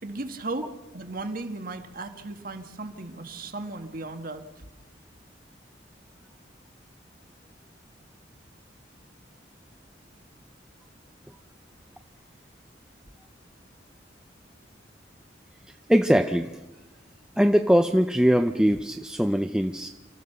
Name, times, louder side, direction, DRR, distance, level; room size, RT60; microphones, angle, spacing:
voice 1, 0.0-4.6, right 2 dB, 50° right, 7 dB, 1.7 m, -36 dB
voice 2, 15.9-16.5 17.4-19.9, equal, 5° right, 6 dB, 0.6 m, -21 dB
28.0 x 14.5 x 6.7 m, 1.2 s
head